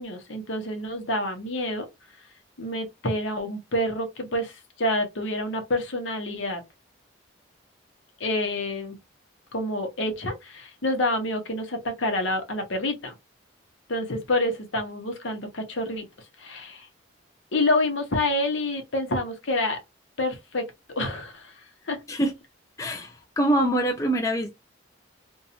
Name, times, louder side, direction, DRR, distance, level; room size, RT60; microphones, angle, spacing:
voice 1, 0.0-1.9 2.6-6.6 8.2-9.0 9.5-13.1 13.9-16.0 16.4-16.9 17.5-19.8 20.2-20.7 21.0-21.5 21.9-22.0, left 1 dB, 75° left, 0.9 m, -28 dB
voice 2, 22.8-24.5, right 1 dB, 15° left, 0.4 m, -24 dB
2.7 x 2.3 x 2.7 m
head